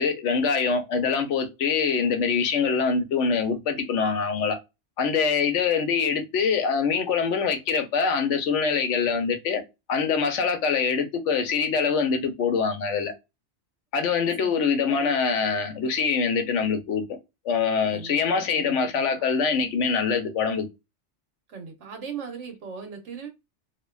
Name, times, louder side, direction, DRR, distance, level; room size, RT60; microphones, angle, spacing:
voice 1, 0.0-4.6 5.0-9.6 9.9-13.1 13.9-17.0 17.4-20.7, left 5 dB, 85° left, 1.0 m, -24 dB
voice 2, 18.5-19.0 21.5-23.3, right 6 dB, 85° right, 1.2 m, -38 dB
2.7 x 2.2 x 2.2 m
omnidirectional pair, 1.2 m